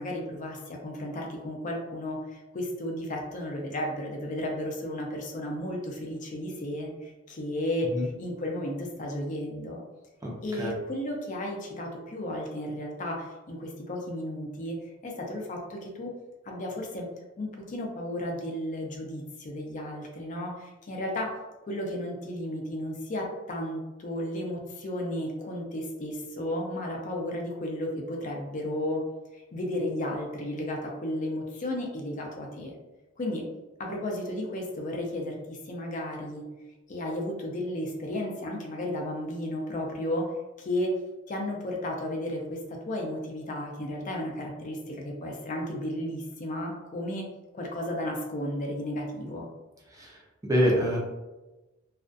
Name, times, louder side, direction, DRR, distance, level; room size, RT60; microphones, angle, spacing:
voice 1, 0.0-7.9 8.2-9.8 10.4-14.8 15.0-16.1 16.4-17.1 17.4-21.3 21.6-29.0 29.3-32.7 33.2-33.4 33.8-36.4 36.9-40.3 40.6-40.9 41.3-47.2 47.5-49.5, left 1 dB, 40° left, 0 dB, 0.4 m, -33 dB
voice 2, 10.2-10.7 49.9-50.2 50.5-51.0, equal, 15° right, -3 dB, 0.4 m, -26 dB
2.4 x 2.2 x 2.5 m, 1.1 s
head